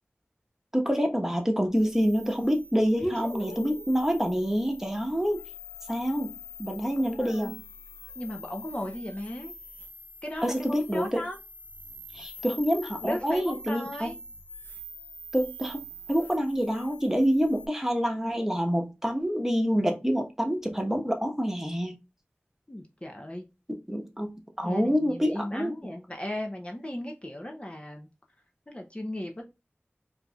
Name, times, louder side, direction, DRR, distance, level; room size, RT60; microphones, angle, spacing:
voice 1, 0.7-5.4 5.9-6.3 6.6-7.5 10.4-11.2 12.1-14.1 15.3-21.9 23.7-24.3 24.6-25.7, equal, 10° right, 1.0 m, -27 dB
sound 1, 1.7-17.7, left 1 dB, 50° left, 1.3 m, -45 dB
voice 2, 3.0-3.9 6.8-7.6 8.2-9.5 10.2-11.4 13.0-14.2 22.7-23.4 24.6-28.1 28.7-29.4, left 1 dB, 25° left, 0.6 m, -36 dB
4.6 x 2.7 x 2.3 m
wide cardioid pair, 40°, 4 cm